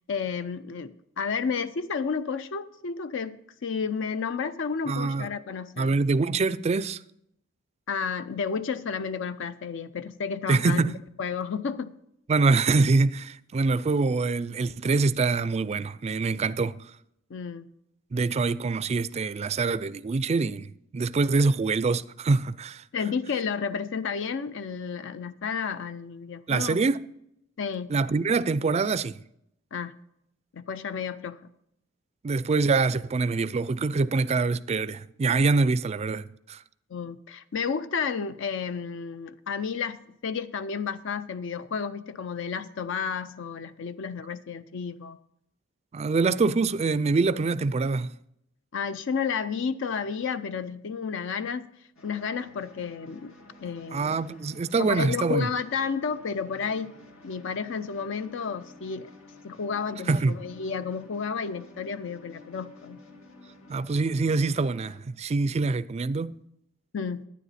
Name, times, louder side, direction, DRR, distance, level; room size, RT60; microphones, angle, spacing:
voice 1, 0.1-3.4 3.6-6.0 7.9-10.9 11.2-12.0 17.3-17.7 22.9-26.8 27.6-27.9 29.7-30.0 30.5-31.5 36.9-45.2 48.7-51.7 52.0-53.3 53.6-54.2 54.8-56.9 57.2-59.1 59.4-63.0 66.9-67.3, left 6 dB, 65° left, 0.5 m, -31 dB
voice 2, 4.9-5.3 5.8-7.0 10.5-10.9 12.3-16.8 18.1-22.8 26.5-27.1 27.9-29.2 32.2-36.6 45.9-48.1 53.9-55.5 60.1-60.4 63.7-66.4, right 3 dB, 30° right, 0.4 m, -25 dB
sound 1, 52.0-65.0, left 2 dB, 85° left, 2.0 m, -52 dB
11.0 x 10.0 x 4.2 m
head